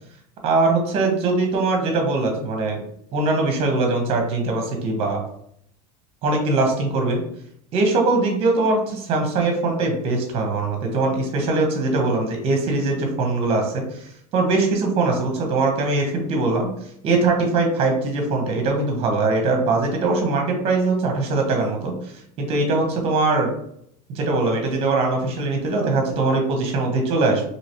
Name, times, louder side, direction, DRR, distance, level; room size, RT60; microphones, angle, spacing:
voice 1, 0.4-2.8 3.1-5.2 6.2-7.2 7.7-16.7 17.0-22.1 22.4-23.5 24.1-27.4, right 3 dB, 30° right, 3 dB, 0.8 m, -21 dB
2.9 x 2.8 x 2.9 m, 0.70 s
supercardioid pair, 165°, 19 cm